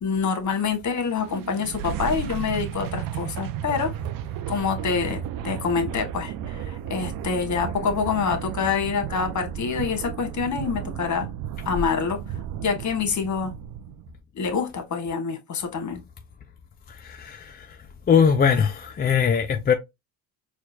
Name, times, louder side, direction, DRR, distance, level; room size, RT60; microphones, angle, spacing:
voice 1, 0.0-3.9 4.5-6.3 6.7-11.3 11.7-12.2 12.6-13.5 14.3-16.0, left 5 dB, 40° left, 1.1 m, -26 dB
sound 1, 1.0-14.1, right 10 dB, 55° right, 0.5 m, -34 dB
voice 2, 17.0-17.7 18.1-19.7, left 7 dB, 25° left, 0.3 m, -21 dB
4.4 x 2.3 x 2.6 m
supercardioid pair, 65°, 43 cm